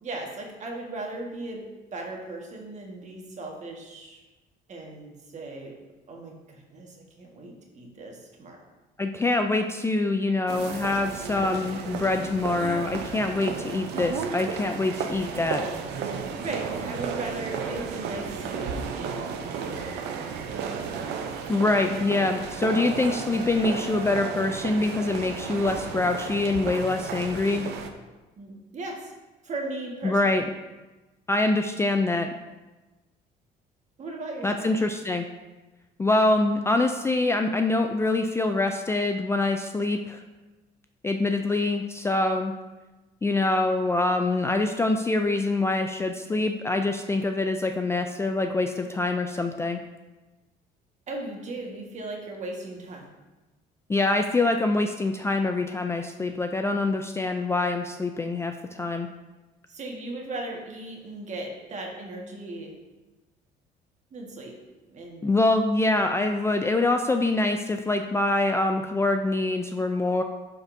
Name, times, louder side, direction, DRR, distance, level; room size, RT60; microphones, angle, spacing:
voice 1, 0.0-4.2 4.7-5.8 6.1-8.6 16.4-20.0 20.4-21.2 28.4-29.1 29.4-30.5 34.0-34.7 51.1-53.1 59.7-62.8 64.1-64.6 64.9-65.3, right 2 dB, 45° right, 0 dB, 1.5 m, -37 dB
voice 2, 9.0-15.6 21.5-27.7 30.0-30.4 31.3-32.3 34.4-35.3 36.0-40.2 41.0-42.5 43.2-49.8 53.9-59.1 65.2-70.2, left 2 dB, 15° left, 5 dB, 0.3 m, -25 dB
sound 1, 10.5-27.9, right 6 dB, 80° right, 0.7 m, -33 dB
11.5 x 4.1 x 2.6 m, 1.1 s
cardioid pair, 110°, 17 cm